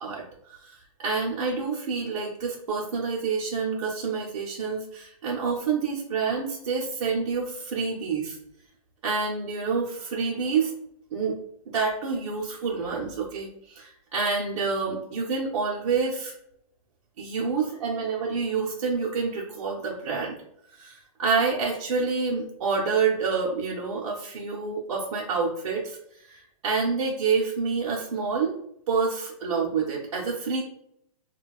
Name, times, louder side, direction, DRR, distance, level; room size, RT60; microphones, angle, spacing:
voice 1, 0.0-8.4 9.0-10.7 11.1-11.4 11.7-16.3 17.2-20.4 20.7-28.6 28.9-30.6, right 5 dB, 55° right, -4 dB, 0.8 m, -28 dB
5.1 x 2.3 x 2.3 m, 0.74 s
hypercardioid pair, 170°, 19 cm